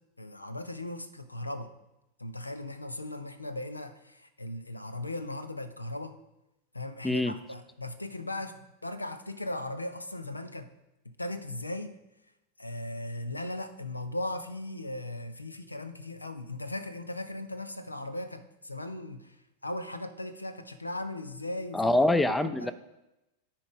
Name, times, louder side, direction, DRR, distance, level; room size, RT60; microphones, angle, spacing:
voice 1, 0.2-1.7 2.2-6.2 6.7-10.7 11.1-11.9 12.6-19.3 19.6-21.9 22.3-22.7, left 1 dB, 85° left, 11 dB, 0.6 m, -38 dB
voice 2, 7.0-7.3 21.7-22.7, left 2 dB, 5° left, 13 dB, 0.4 m, -24 dB
12.0 x 4.6 x 4.9 m, 0.94 s
figure-of-eight pair, 90°, 0 cm